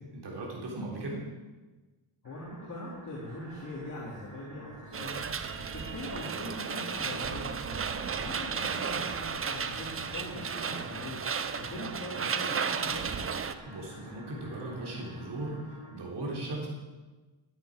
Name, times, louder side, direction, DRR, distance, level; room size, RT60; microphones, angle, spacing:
voice 1, 0.1-1.2 13.7-15.6 15.9-16.7, right 2 dB, 60° right, -3 dB, 3.8 m, -37 dB
voice 2, 2.2-5.4 5.7-13.1, left 1 dB, 35° left, -4 dB, 2.9 m, -42 dB
sound 1, 2.2-16.0, right 1 dB, 80° right, 5.1 m, -51 dB
sound 2, 4.9-13.5, right 6 dB, 30° right, 0.6 m, -34 dB
13.5 x 10.5 x 5.0 m, 1.2 s
cardioid pair, 130°, 47 cm